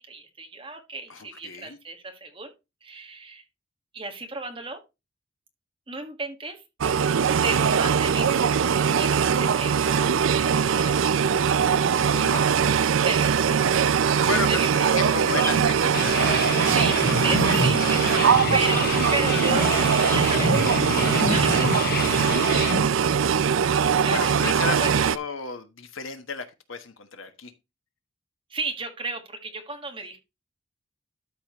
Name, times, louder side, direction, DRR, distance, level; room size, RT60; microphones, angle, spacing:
voice 1, 0.0-2.5 2.8-3.4 3.9-4.8 5.9-6.6 7.4-11.1 13.0-13.7 14.5-14.7 16.6-17.0 17.2-20.6 21.1-23.0 23.9-24.2 24.4-24.5 24.8-25.0 28.5-30.2, right 3 dB, 25° right, 1.6 m, -34 dB
voice 2, 1.1-1.8 7.6-7.9 8.8-9.1 12.0-12.5 14.0-16.0 24.1-27.5, left 4 dB, 80° left, 1.3 m, -33 dB
sound 1, 6.8-25.2, right 7 dB, 75° right, 0.5 m, -21 dB
sound 2, 15.2-22.2, left 1 dB, 10° left, 1.8 m, -39 dB
sound 3, 15.9-22.8, left 3 dB, 50° left, 0.8 m, -28 dB
12.5 x 5.0 x 3.0 m
head